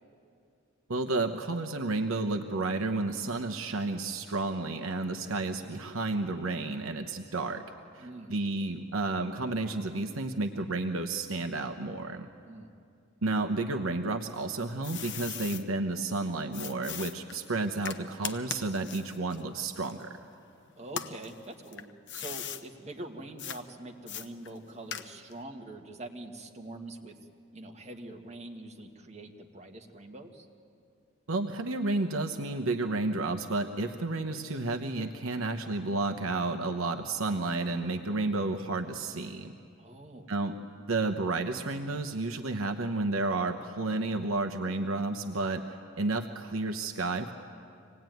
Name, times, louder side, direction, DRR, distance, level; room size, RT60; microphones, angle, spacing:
voice 1, 0.9-7.6 7.9-12.3 13.2-20.2 31.3-39.5 40.3-45.6 46.0-47.3, right 2 dB, 70° right, 6 dB, 1.0 m, -31 dB
voice 2, 8.0-8.3 12.4-12.7 20.7-27.2 27.5-30.4 39.8-40.3, right 2 dB, 35° right, 2 dB, 2.0 m, -44 dB
sound 1, 14.2-15.6 16.5-20.4 20.8-22.6 23.4-23.6 24.1-25.4, left 9 dB, 60° left, 1.0 m, -40 dB
25.5 x 18.5 x 9.3 m, 2.4 s
head